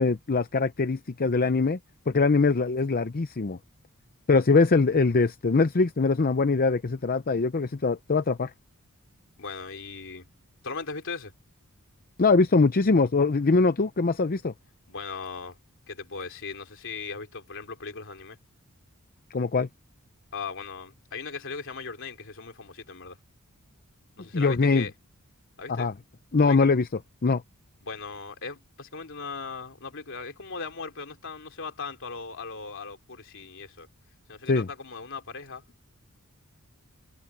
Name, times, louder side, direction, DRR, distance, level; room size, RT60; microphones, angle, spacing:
voice 1, 0.0-1.8 2.1-3.6 4.3-8.5 12.2-14.5 19.3-19.7 24.3-24.9 25.7-25.9 26.3-26.9 27.2-27.4 34.5-34.7, left 4 dB, 40° left, 0.6 m, -22 dB
voice 2, 9.4-10.3 10.6-11.3 14.9-15.6 15.9-18.4 20.3-23.2 24.2-24.9 25.6-25.9 26.4-26.7 27.8-33.9 34.3-35.6, left 4 dB, 60° left, 3.1 m, -38 dB
head